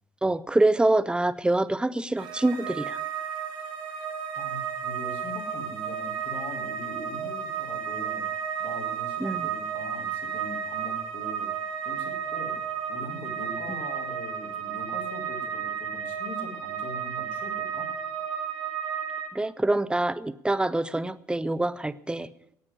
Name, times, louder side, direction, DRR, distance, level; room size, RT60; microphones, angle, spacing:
voice 1, 0.2-3.0 9.2-9.5 19.3-22.3, right 2 dB, 10° right, 15 dB, 0.8 m, -25 dB
sound 1, 2.2-19.3, right 8 dB, 65° right, 1.8 m, -33 dB
voice 2, 4.4-8.2 8.6-11.5 11.8-17.9, left 2 dB, 60° left, 0 dB, 3.6 m, -42 dB
15.0 x 9.9 x 9.5 m, 0.73 s
figure-of-eight pair, 50°, 10 cm